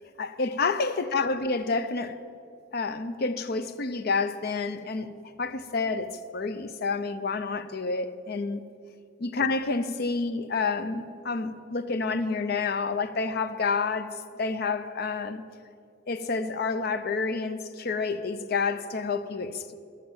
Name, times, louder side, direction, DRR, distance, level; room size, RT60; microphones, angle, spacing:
voice 1, 0.2-2.2 2.7-5.1 5.4-8.6 9.2-15.4 16.1-19.7, left 4 dB, 55° left, 0.6 m, -29 dB
11.5 x 7.5 x 7.8 m
head